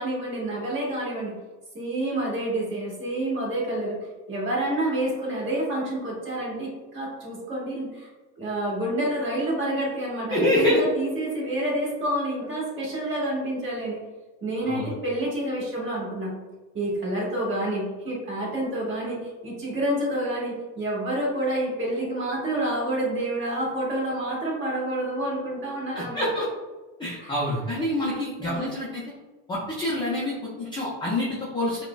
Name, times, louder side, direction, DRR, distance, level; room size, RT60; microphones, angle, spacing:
voice 1, 0.0-1.4 1.7-4.0 4.3-8.1 8.4-14.0 14.4-16.3 16.7-26.3 27.2-27.4 28.0-28.7, right 1 dB, 25° right, -4 dB, 1.3 m, -28 dB
voice 2, 10.3-10.8 14.6-14.9 26.0-26.5 27.0-29.0 29.5-31.8, left 1 dB, 10° left, -6 dB, 0.4 m, -26 dB
4.8 x 2.1 x 2.2 m, 1.2 s
supercardioid pair, 130°, 47 cm